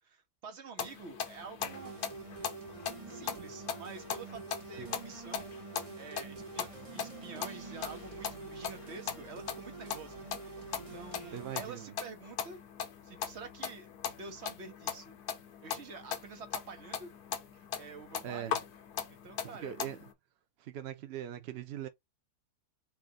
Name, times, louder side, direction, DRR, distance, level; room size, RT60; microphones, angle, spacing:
voice 1, 0.0-2.0 3.1-5.5 5.9-10.6 10.9-12.6 13.0-13.9 14.2-15.1 15.6-17.1 17.7-18.6 19.1-19.8, right 4 dB, 50° right, 1.2 m, -48 dB
sound 1, 0.8-20.1, left 8 dB, 75° left, 1.4 m, -40 dB
sound 2, 1.6-11.7, right 4 dB, 30° right, 0.7 m, -47 dB
voice 2, 11.3-11.9 18.2-18.5 19.6-20.0 20.6-21.9, right 10 dB, 70° right, 0.6 m, -41 dB
4.5 x 2.5 x 3.8 m
omnidirectional pair, 1.7 m